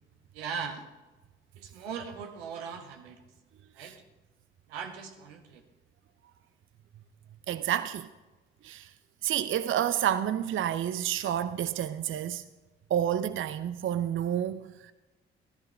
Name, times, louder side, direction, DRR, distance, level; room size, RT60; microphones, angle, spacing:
voice 1, 0.3-0.8 1.6-3.2 3.8-3.9 4.7-5.6, right 6 dB, 75° right, 1.2 m, -39 dB
voice 2, 7.5-8.1 8.6-8.9 9.2-12.4 12.9-14.9, right 10 dB, 40° right, 0.6 m, -29 dB
16.0 x 13.5 x 3.3 m
figure-of-eight pair, 40°, 30 cm